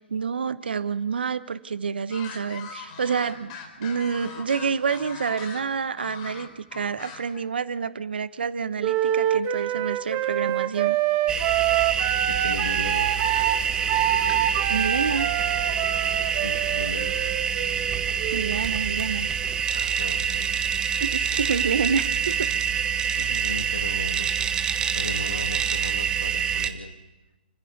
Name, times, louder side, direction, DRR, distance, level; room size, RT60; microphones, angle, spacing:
voice 1, 0.0-11.0 14.7-15.3 18.3-19.3 21.0-22.5, right 6 dB, 70° right, 14 dB, 1.2 m, -28 dB
sound 1, 2.1-7.4, left 5 dB, 35° left, 4.3 m, -40 dB
Wind instrument woodwind instrument, 8.8-18.6, right 12 dB, 30° right, 1.3 m, -26 dB
sound 2, 11.3-26.7, right 7 dB, 15° right, 1.4 m, -26 dB
voice 2, 12.3-13.1 16.4-17.1 19.7-20.6 23.2-24.3 24.8-26.9, left 2 dB, 80° left, 6 dB, 2.4 m, -36 dB
29.5 x 10.5 x 9.4 m, 1.0 s
figure-of-eight pair, 130°, 6 cm